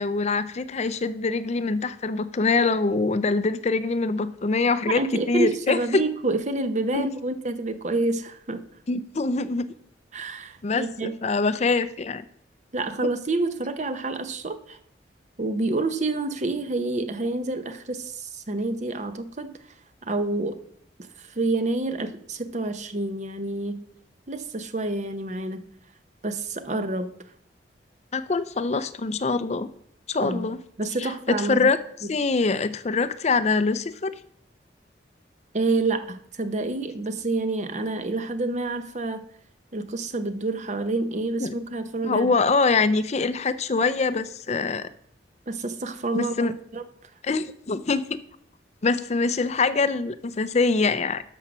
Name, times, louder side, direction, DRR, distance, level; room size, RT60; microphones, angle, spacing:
voice 1, 0.0-5.0 5.3-6.0 6.9-7.1 8.9-9.7 10.6-12.2 28.1-29.7 30.1-30.6 31.0-31.8 32.1-34.1 41.4-41.5 42.0-44.9 46.1-46.5 47.2-48.0 48.8-51.2, left 4 dB, 40° left, 13 dB, 0.5 m, -24 dB
voice 2, 4.9-8.6 10.1-11.1 12.7-14.8 15.4-19.5 20.0-20.6 21.2-23.8 24.3-25.7 26.2-27.1 30.2-30.5 30.8-31.7 35.5-39.3 39.7-42.3 45.5-46.9, right 2 dB, 40° right, 10 dB, 0.9 m, -28 dB
12.5 x 5.6 x 6.1 m, 0.66 s
head